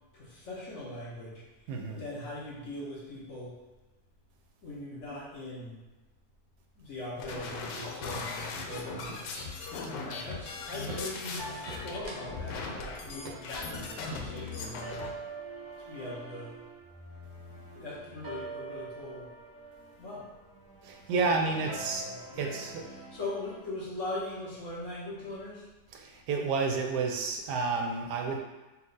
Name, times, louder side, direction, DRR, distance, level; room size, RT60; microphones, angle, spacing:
voice 1, 0.1-1.4 1.9-3.5 4.6-5.8 6.7-9.4 10.0-15.1 15.9-16.5 17.7-19.3 20.0-20.2 21.1-21.5 22.0-22.7 23.1-25.7, left 1 dB, 55° left, -6 dB, 1.1 m, -40 dB
voice 2, 1.7-2.0 20.8-22.1 22.3-22.9 25.9-28.4, right 4 dB, 75° right, 3 dB, 1.1 m, -30 dB
sound 1, 6.7-7.1 7.3-7.7 8.0-8.7 9.0-10.4 10.9-11.3 11.7-12.7 13.0-13.1 13.2-13.7 14.1-14.5 14.8-15.3, right 2 dB, 45° right, 0.9 m, -46 dB
sound 2, 7.2-15.1, left 4 dB, 85° left, 1.2 m, -39 dB
sound 3, 11.4-23.6, right 2 dB, 25° right, 0.5 m, -45 dB
4.2 x 2.3 x 3.9 m, 1.1 s
omnidirectional pair, 1.8 m